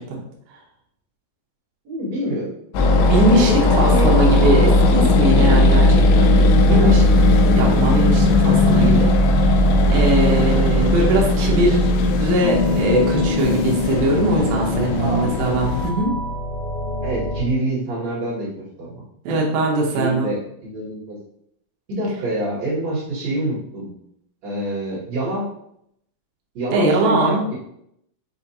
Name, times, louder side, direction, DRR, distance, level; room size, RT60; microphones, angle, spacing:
voice 1, 1.8-2.5 3.3-4.1 6.7-7.0 15.0-15.3 17.0-18.5 18.8-19.0 19.9-20.4 20.6-21.2 21.9-23.9 24.4-25.5 26.5-27.5, right 1 dB, 50° right, -9 dB, 2.2 m, -26 dB
sound 1, 2.7-15.9, left 2 dB, 85° left, 2.4 m, -17 dB
voice 2, 3.0-7.0 7.5-9.1 9.9-16.1 19.3-20.3 26.7-27.4, right 2 dB, 75° right, -2 dB, 2.2 m, -21 dB
sound 2, 12.4-17.4, left 2 dB, 55° left, 1.2 m, -26 dB
7.0 x 2.5 x 2.8 m, 0.74 s
omnidirectional pair, 5.3 m